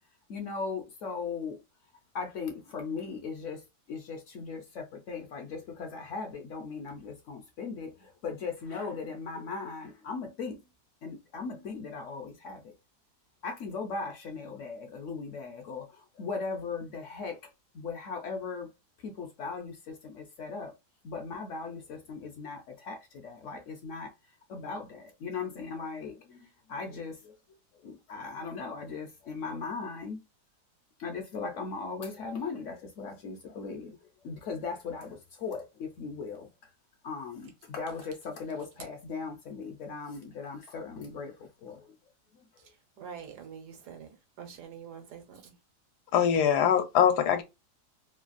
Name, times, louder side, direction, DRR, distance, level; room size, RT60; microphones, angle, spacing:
voice 1, 0.3-1.6 2.1-10.6 11.0-12.7 13.4-17.4 17.7-18.7 19.0-20.7 21.0-24.1 24.5-27.4 27.8-30.2 31.0-34.0 34.2-36.5 37.0-41.9, left 4 dB, 65° left, 0.8 m, -38 dB
voice 2, 42.6-45.6, right 7 dB, 80° right, 1.4 m, -46 dB
voice 3, 46.1-47.4, left 9 dB, 80° left, 1.2 m, -23 dB
3.2 x 2.2 x 2.4 m
omnidirectional pair, 1.7 m